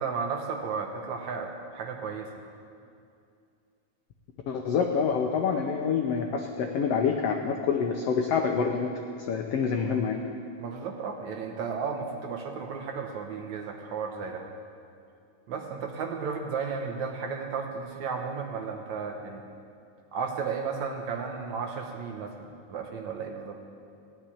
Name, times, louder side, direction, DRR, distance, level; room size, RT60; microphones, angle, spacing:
voice 1, 0.0-2.3 10.6-14.5 15.5-19.4 20.1-23.6, right 5 dB, 65° right, 3 dB, 2.1 m, -34 dB
voice 2, 4.5-8.9 9.3-10.2, left 6 dB, 80° left, 2 dB, 1.4 m, -27 dB
17.0 x 7.5 x 9.9 m, 2.5 s
omnidirectional pair, 3.9 m